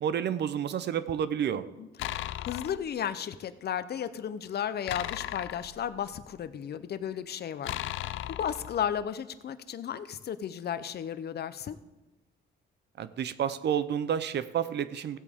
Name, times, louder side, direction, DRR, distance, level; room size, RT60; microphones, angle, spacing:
voice 1, 0.0-1.6 13.0-15.2, right 9 dB, 60° right, 14 dB, 0.7 m, -30 dB
voice 2, 1.8-11.8, left 9 dB, 55° left, 13 dB, 0.7 m, -34 dB
sound 1, 2.0-2.9 4.9-6.4 7.6-9.1, left 14 dB, 80° left, 0.4 m, -36 dB
16.5 x 8.3 x 3.7 m, 1.0 s
cardioid pair, 90°, 20 cm